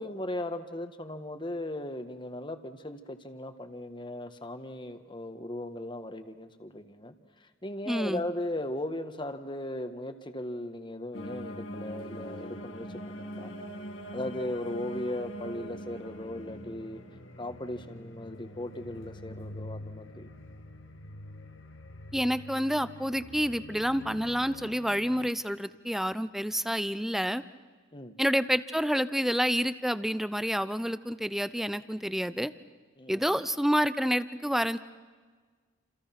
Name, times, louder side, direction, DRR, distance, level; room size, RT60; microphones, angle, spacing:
voice 1, 0.0-7.1 7.6-13.5 14.1-17.0 17.4-20.3 27.9-28.2 33.0-33.2, left 1 dB, 25° left, 8 dB, 1.6 m, -37 dB
voice 2, 7.9-8.2 22.1-27.4 28.2-32.5 33.1-34.8, equal, ahead, 14 dB, 0.7 m, -28 dB
sound 1, 11.1-25.3, equal, 85° left, 1.9 m, -43 dB
29.5 x 28.0 x 6.0 m, 1.4 s
head